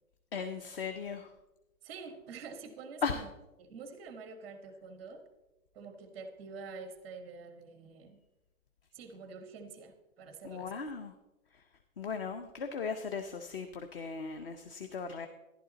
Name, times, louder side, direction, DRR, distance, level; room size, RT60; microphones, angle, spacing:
voice 1, 0.3-1.3 3.0-3.2 10.4-11.2 11.5-11.7 12.0-15.3, left 5 dB, 40° left, 8 dB, 0.7 m, -37 dB
voice 2, 1.8-3.2 3.6-5.2 5.7-8.2 8.9-10.7, right 4 dB, 5° right, 8 dB, 0.6 m, -47 dB
11.5 x 11.0 x 4.0 m, 1.0 s
hypercardioid pair, 160°, 43 cm